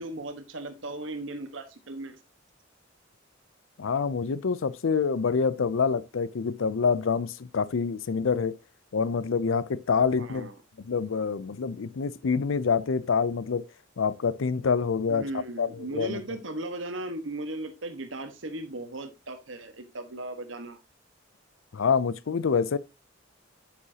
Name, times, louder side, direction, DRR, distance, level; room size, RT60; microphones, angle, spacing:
voice 1, 0.0-2.2 10.2-10.5 15.1-20.8, right 2 dB, 80° right, 1.4 m, -37 dB
voice 2, 3.8-8.6 8.9-10.5 10.8-13.6 14.0-16.2 21.7-22.8, left 5 dB, 90° left, 0.5 m, -26 dB
9.5 x 7.0 x 2.8 m
head